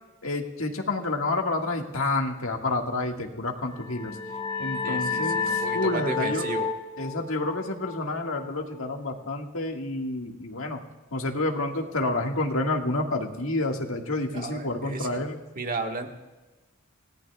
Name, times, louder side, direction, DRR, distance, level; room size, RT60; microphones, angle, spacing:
voice 1, 0.2-4.2 4.6-6.5 7.0-10.8 11.1-15.4, left 2 dB, 75° left, 2 dB, 1.8 m, -29 dB
sound 1, 3.7-9.1, left 5 dB, 30° left, 3.0 m, -32 dB
voice 2, 4.8-6.7 14.3-15.1 15.5-16.1, right 3 dB, 40° right, 3 dB, 1.6 m, -33 dB
29.0 x 18.0 x 2.4 m, 1.2 s
head